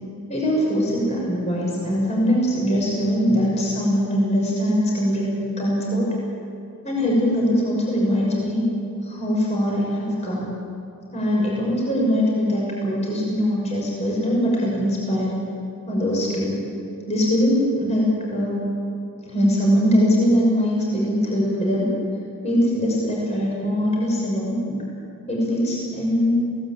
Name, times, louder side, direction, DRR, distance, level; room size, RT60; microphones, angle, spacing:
voice 1, 0.3-6.1 6.8-8.6 9.0-10.5 11.1-15.4 15.9-16.6 17.1-18.7 19.3-21.9 22.4-24.6 25.3-26.4, equal, 30° left, -4 dB, 5.9 m, -22 dB
23.0 x 18.0 x 8.8 m, 2.7 s
head